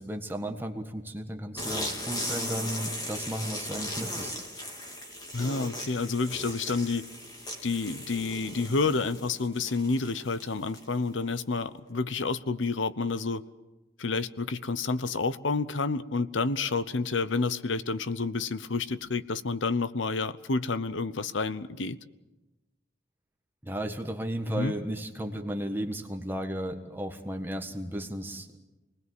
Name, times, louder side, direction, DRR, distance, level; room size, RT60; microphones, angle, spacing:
voice 1, 0.0-4.3 23.6-28.6, right 1 dB, 10° right, 4 dB, 1.5 m, -34 dB
sound 1, 1.6-11.1, left 1 dB, 20° left, 3.4 m, -37 dB
voice 2, 5.3-7.0 7.6-13.4 14.0-22.0 24.5-24.7, left 4 dB, 85° left, 14 dB, 0.9 m, -29 dB
27.0 x 20.0 x 7.8 m, 1.1 s
head